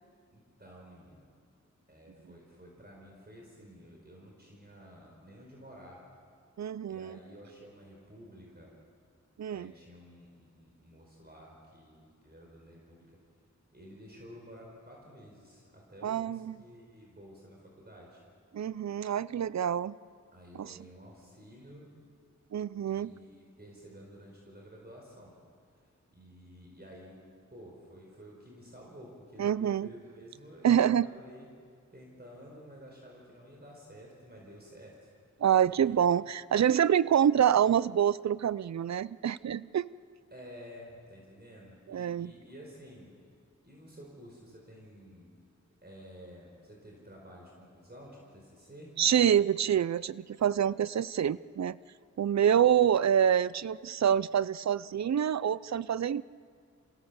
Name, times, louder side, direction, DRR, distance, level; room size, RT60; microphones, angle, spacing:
voice 1, 0.3-1.3 1.9-6.0 6.9-8.7 9.5-13.1 13.7-18.2 20.3-21.9 22.9-25.4 25.8-27.2 27.5-31.5 31.9-35.1 35.6-35.9 40.3-43.1 43.6-45.3 45.8-48.9, equal, 30° right, -2 dB, 4.7 m, -51 dB
voice 2, 6.6-7.2 9.4-9.7 16.0-16.5 18.5-19.9 20.6-20.7 22.5-23.1 29.4-29.9 30.6-31.1 35.4-39.9 41.9-42.3 49.0-51.8 52.2-56.2, right 9 dB, 60° right, 19 dB, 0.5 m, -26 dB
28.0 x 16.0 x 7.0 m, 2.1 s
wide cardioid pair, 70°, 30 cm